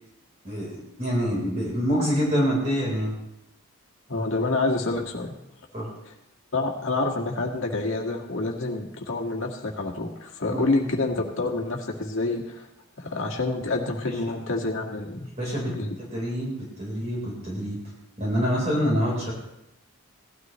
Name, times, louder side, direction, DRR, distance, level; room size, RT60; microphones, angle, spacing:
voice 1, 0.4-3.1 5.7-5.9 10.5-10.7 15.4-17.8 18.2-19.3, equal, 30° right, -4 dB, 4.1 m, -26 dB
voice 2, 4.1-5.3 6.5-12.7 13.0-15.3 15.7-15.9, left 2 dB, 60° left, 1 dB, 1.9 m, -27 dB
18.0 x 12.5 x 3.1 m, 0.86 s
head